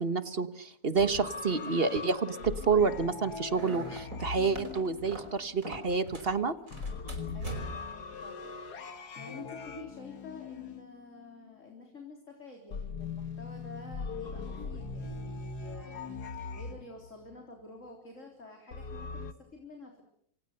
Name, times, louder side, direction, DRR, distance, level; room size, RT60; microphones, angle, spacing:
voice 1, 0.0-6.5, right 4 dB, 40° right, 12 dB, 1.4 m, -29 dB
sound 1, 0.9-5.6 6.7-11.5 12.7-17.4 18.7-19.3, left 4 dB, 85° left, 2.1 m, -40 dB
sound 2, 3.5-6.4 6.7-8.0, right 1 dB, 60° right, 5.4 m, -43 dB
voice 2, 7.0-20.0, left 2 dB, 50° left, 2 dB, 4.2 m, -49 dB
28.5 x 25.0 x 6.7 m, 0.68 s
omnidirectional pair, 1.6 m